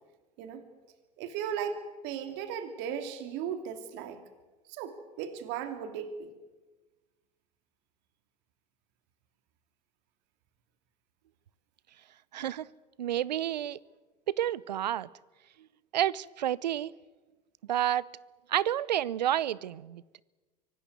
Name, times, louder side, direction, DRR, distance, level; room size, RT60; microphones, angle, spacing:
voice 1, 1.2-1.8 2.0-4.2 4.7-6.3, right 8 dB, 55° right, 8 dB, 2.8 m, -36 dB
voice 2, 12.3-12.7 13.0-13.8 14.3-15.1 15.9-16.9 17.7-18.1 18.5-20.0, right 11 dB, 85° right, 23 dB, 0.7 m, -29 dB
24.5 x 18.5 x 9.5 m, 1.2 s
hypercardioid pair, 85°, 21 cm